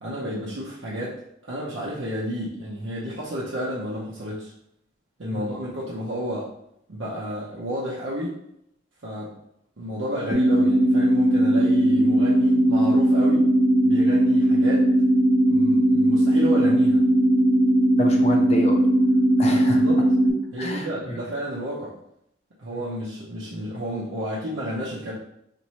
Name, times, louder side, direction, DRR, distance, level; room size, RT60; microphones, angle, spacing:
voice 1, 0.0-1.2 1.5-4.5 5.2-6.5 6.9-8.3 9.0-9.3 9.8-13.4 13.8-14.9 15.5-17.0 19.8-20.0 20.5-21.9 22.6-25.1, equal, 65° right, -7 dB, 0.7 m, -31 dB
sound 1, 10.3-20.3, right 1 dB, 15° right, 0.6 m, -19 dB
voice 2, 18.0-18.8 19.4-19.8 20.6-21.2 22.7-22.8, equal, 30° left, 2 dB, 0.5 m, -29 dB
3.0 x 2.6 x 4.2 m, 0.77 s
head